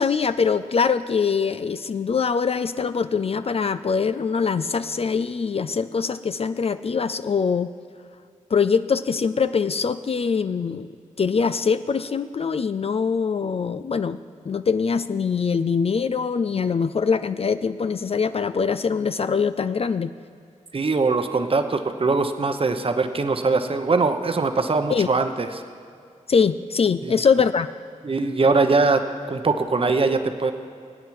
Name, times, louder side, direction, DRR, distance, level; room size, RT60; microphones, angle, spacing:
voice 1, 0.0-7.7 8.5-10.9 11.2-14.2 14.5-20.1 24.9-25.1 26.3-27.7, left 5 dB, 45° left, 12 dB, 0.4 m, -23 dB
voice 2, 20.7-25.6 27.0-27.2 28.0-29.0 29.3-30.5, right 3 dB, 45° right, 8 dB, 1.0 m, -22 dB
24.0 x 8.8 x 4.7 m, 2.3 s
cardioid pair, 55°, 13 cm